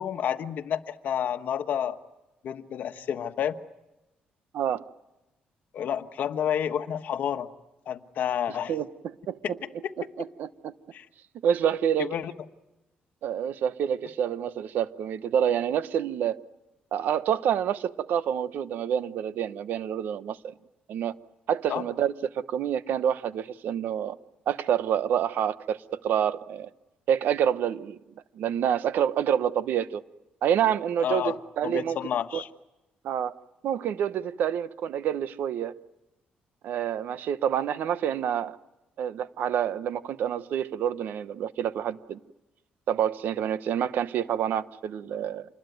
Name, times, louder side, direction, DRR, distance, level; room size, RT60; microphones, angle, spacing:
voice 1, 0.0-2.0 2.4-3.5 5.7-7.5 7.9-8.7 9.4-9.5 9.8-9.9 10.9-11.0 12.0-12.3 21.7-21.8 31.0-31.4 31.6-32.5, left 9 dB, 65° left, 1.3 m, -29 dB
voice 2, 8.7-9.4 10.2-10.7 11.4-12.1 13.2-16.4 16.9-20.5 20.9-21.2 21.5-24.2 24.5-26.7 27.1-28.0 28.4-30.0 30.4-32.0 32.3-32.4 33.0-33.3 33.6-35.7 36.6-38.6 39.0-42.2 42.9-45.4, right 9 dB, 70° right, 1.0 m, -27 dB
27.0 x 21.0 x 9.3 m
cardioid pair, 125°, 3 cm